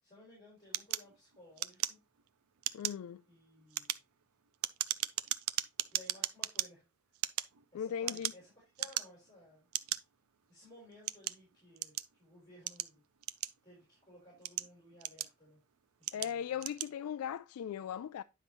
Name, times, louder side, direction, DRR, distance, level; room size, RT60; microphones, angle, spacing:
voice 1, 0.0-2.0 3.3-4.1 5.9-6.9 7.7-9.7 10.5-13.0 13.6-15.6 16.1-16.7, left 1 dB, 20° left, 4.1 m, -58 dB
sound 1, 0.7-2.3 2.6-3.1 3.6-6.7 7.1-8.5 8.8-9.3 9.7-10.0 10.7-12.1 12.7-13.8 14.3-15.5 16.0-16.3 16.6-16.9, right 14 dB, 75° right, 0.5 m, -37 dB
voice 2, 2.7-3.2 7.7-8.3 16.1-18.2, left 8 dB, 80° left, 0.3 m, -38 dB
9.6 x 5.6 x 3.0 m
head